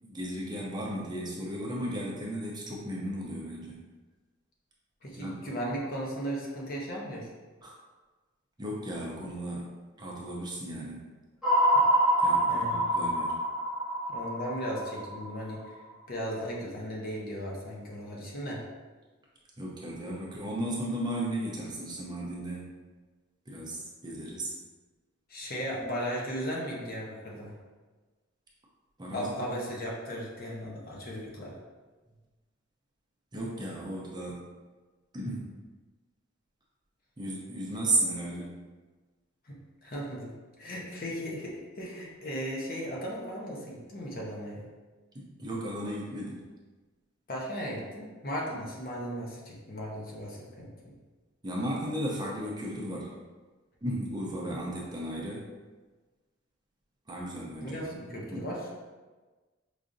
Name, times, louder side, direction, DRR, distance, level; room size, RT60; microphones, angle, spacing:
voice 1, 0.0-3.8 5.1-5.5 7.6-7.7 8.6-11.0 12.2-13.3 19.6-22.7 23.5-24.5 29.0-29.5 33.3-34.5 35.1-35.5 37.2-38.6 45.1-46.4 51.4-53.2 53.8-55.5 57.1-58.0 58.3-58.4, right 1 dB, 20° right, -4 dB, 0.6 m, -35 dB
voice 2, 5.0-7.3 11.7-11.9 12.5-12.8 14.1-15.8 16.1-18.6 25.3-27.5 29.1-31.5 39.4-44.6 47.3-50.7 57.6-58.8, equal, 45° left, -3 dB, 0.8 m, -36 dB
sound 1, 11.4-15.7, right 1 dB, 5° right, 1.0 m, -26 dB
4.8 x 2.6 x 2.5 m, 1.3 s
head